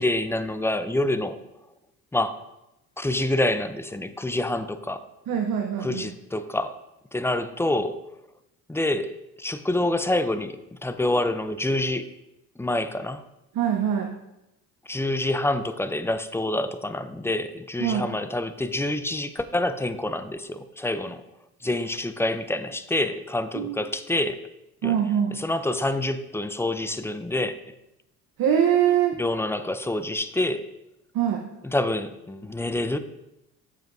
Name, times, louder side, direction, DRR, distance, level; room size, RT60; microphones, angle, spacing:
voice 1, 0.0-1.4 2.1-2.4 3.0-5.1 5.8-6.8 7.1-8.0 8.7-9.1 9.4-12.1 12.6-13.2 14.9-21.2 21.6-24.4 24.8-25.0 25.3-27.5 29.2-30.7 31.6-33.0, left 1 dB, 5° left, 11 dB, 0.5 m, -27 dB
voice 2, 5.3-6.0 13.5-14.1 17.8-18.1 23.5-23.8 24.8-25.4 28.4-29.2 31.1-31.4, right 9 dB, 50° right, 4 dB, 1.0 m, -23 dB
9.4 x 7.5 x 2.7 m, 0.90 s
hypercardioid pair, 60°, 43 cm